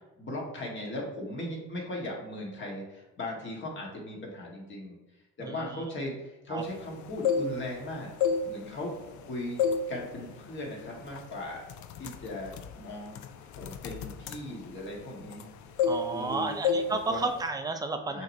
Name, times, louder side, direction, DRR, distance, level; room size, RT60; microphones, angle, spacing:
voice 1, 0.2-5.0 5.4-8.1 8.4-11.6 12.0-15.5 16.1-16.6 16.9-17.3 18.1-18.2, left 1 dB, 40° left, -2 dB, 1.5 m, -38 dB
voice 2, 5.4-5.8 6.5-6.6 15.9-18.2, right 3 dB, 15° right, 6 dB, 0.5 m, -32 dB
sound 1, 7.0-7.8 8.1-9.2 9.6-9.9 10.3-10.5 11.2-11.3 11.6-15.5 15.8-16.3 16.6-16.9 17.2-17.5, left 6 dB, 70° left, 0.5 m, -29 dB
6.1 x 3.2 x 2.7 m, 1.1 s
cardioid pair, 120°, 30 cm